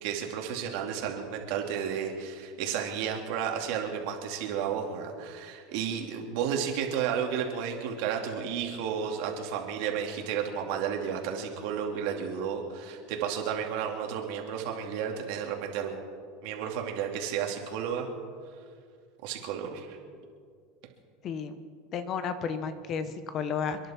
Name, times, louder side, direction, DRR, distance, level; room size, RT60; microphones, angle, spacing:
voice 1, 0.0-16.1 16.4-18.1 19.2-20.0, right 8 dB, 60° right, 2 dB, 2.6 m, -32 dB
voice 2, 21.2-21.6 21.9-23.8, left 6 dB, 35° left, 11 dB, 1.1 m, -32 dB
28.5 x 11.0 x 4.4 m, 2.2 s
supercardioid pair, 140°, 0 cm